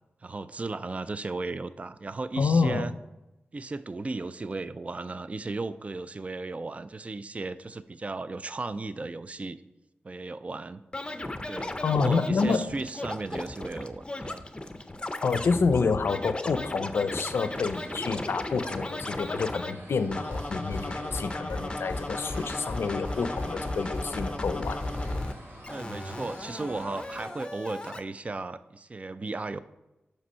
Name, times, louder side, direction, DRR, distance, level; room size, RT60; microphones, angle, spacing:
voice 1, 0.2-2.9 3.5-9.6 10.0-10.8 11.5-14.4 25.7-29.6, right 3 dB, 35° right, 14 dB, 0.3 m, -35 dB
voice 2, 2.4-2.9 11.8-12.7 15.2-24.8, left 4 dB, 85° left, 11 dB, 0.5 m, -28 dB
Scratching (performance technique), 10.9-19.7 20.1-25.3 25.6-28.0, left 2 dB, 25° left, 0.5 m, -35 dB
sound 1, 17.4-27.3, right 1 dB, 65° right, 1.8 m, -46 dB
6.1 x 5.2 x 5.5 m, 0.97 s
wide cardioid pair, 70°, 4 cm